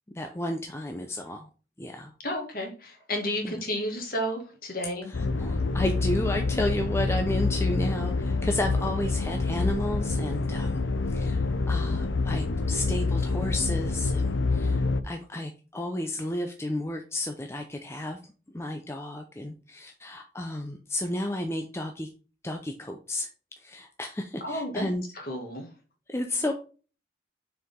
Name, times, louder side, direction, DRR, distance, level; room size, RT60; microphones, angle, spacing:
voice 1, 0.1-1.5 1.8-2.1 3.4-3.5 5.1-18.2 18.5-22.1 22.4-23.3 23.6-25.0 26.1-26.5, left 1 dB, 15° left, 4 dB, 0.6 m, -32 dB
voice 2, 2.2-5.1 10.5-10.6 24.4-24.9 25.1-25.7, equal, 50° left, 2 dB, 2.1 m, -32 dB
sound 1, 5.1-15.0, left 3 dB, 85° left, 0.6 m, -27 dB
6.5 x 4.7 x 3.7 m, 0.35 s
head